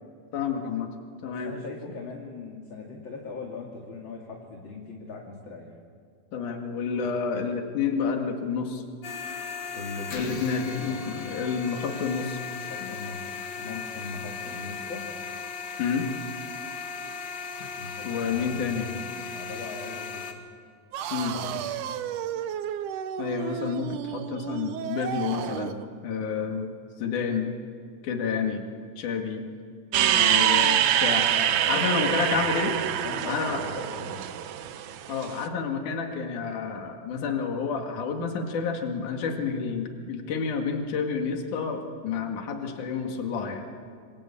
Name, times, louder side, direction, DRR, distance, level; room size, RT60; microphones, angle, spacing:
voice 1, 0.3-0.9 1.2-1.5 6.3-8.8 10.1-12.4 15.8-16.1 18.0-18.9 21.1-21.3 23.2-25.8 26.0-26.7 27.0-27.5 28.0-28.6 29.0-29.4 30.1-31.3 31.7-32.7 33.3-33.6 35.1-43.7, left 5 dB, 75° left, 3 dB, 3.5 m, -29 dB
voice 2, 1.2-5.7 9.7-11.1 12.7-15.1 17.8-20.3 21.2-21.8 31.3-32.5 32.8-34.2, left 3 dB, 40° left, 0 dB, 2.9 m, -40 dB
sound 1, 9.0-20.3, left 5 dB, 60° left, 3.0 m, -37 dB
sound 2, 20.9-25.9, right 10 dB, 85° right, 2.5 m, -33 dB
sound 3, 29.9-35.3, right 11 dB, 70° right, 2.2 m, -24 dB
27.5 x 25.5 x 8.5 m, 2.1 s
omnidirectional pair, 3.5 m